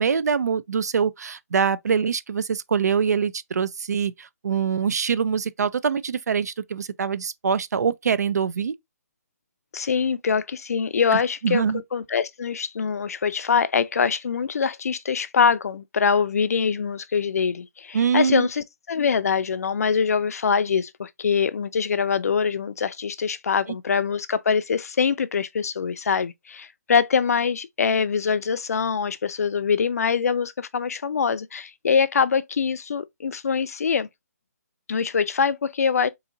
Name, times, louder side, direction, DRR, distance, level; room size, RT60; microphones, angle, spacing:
voice 1, 0.0-8.7 11.1-11.8 17.9-18.5, right 6 dB, 75° right, 0.4 m, -24 dB
voice 2, 9.7-11.6 11.9-34.1 34.9-36.1, left 6 dB, 65° left, 0.4 m, -24 dB
3.9 x 2.7 x 2.5 m
hypercardioid pair, 165°, 9 cm